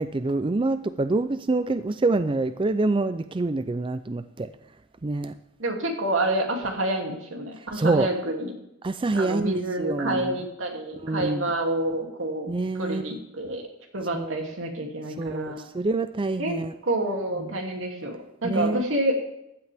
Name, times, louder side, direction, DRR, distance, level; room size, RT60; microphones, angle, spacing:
voice 1, 0.0-4.5 5.0-5.4 7.7-8.1 8.8-10.4 11.0-11.5 12.5-13.1 14.1-14.5 15.2-15.5 15.7-16.7 18.4-18.9, right 3 dB, 25° right, 11 dB, 0.4 m, -26 dB
voice 2, 5.6-8.5 9.1-13.6 13.9-15.7 16.4-16.5 16.8-19.3, right 1 dB, 90° right, 1 dB, 2.7 m, -28 dB
15.5 x 11.0 x 3.5 m, 0.83 s
head